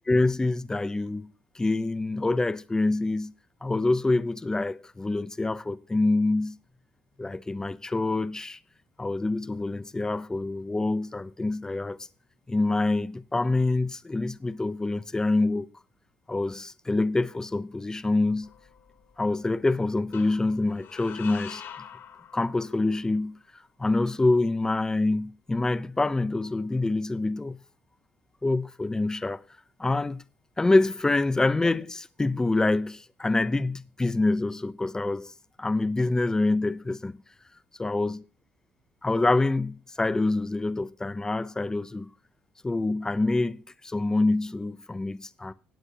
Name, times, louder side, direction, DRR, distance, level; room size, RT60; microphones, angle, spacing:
voice 1, 0.1-1.3 1.6-3.3 3.6-6.6 7.2-8.6 9.0-12.0 12.5-15.7 16.3-18.5 19.2-21.6 22.3-27.6 28.4-29.4 29.8-30.2 30.6-35.3 35.6-37.2 37.8-38.2 39.0-42.1 42.6-45.5, left 2 dB, 15° left, 0.5 m, -26 dB
sound 1, 18.4-19.2 20.1-23.0, left 8 dB, 65° left, 1.9 m, -45 dB
18.0 x 8.1 x 2.8 m
cardioid pair, 100°, 4 cm